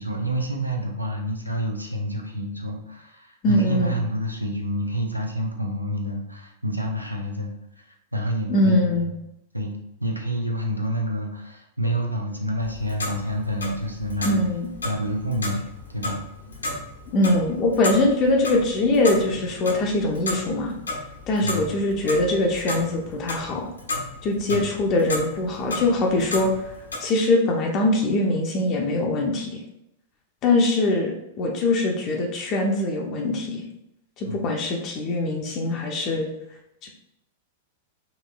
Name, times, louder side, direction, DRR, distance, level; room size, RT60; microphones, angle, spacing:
voice 1, 0.0-9.1 9.5-9.7 10.0-14.4 14.8-16.2 21.4-21.7 24.5-24.7 34.2-34.4, equal, 90° right, 1 dB, 0.6 m, -28 dB
voice 2, 3.4-4.0 8.5-9.1 14.2-14.7 17.1-20.8 21.3-23.7 24.2-26.7 27.0-29.6 30.4-33.7 34.2-36.3 36.8-36.9, left 2 dB, 35° left, 0 dB, 0.6 m, -22 dB
Clock, 12.6-27.0, left 2 dB, 80° left, 0.8 m, -34 dB
4.0 x 3.0 x 2.2 m, 0.85 s
figure-of-eight pair, 95°, 0 cm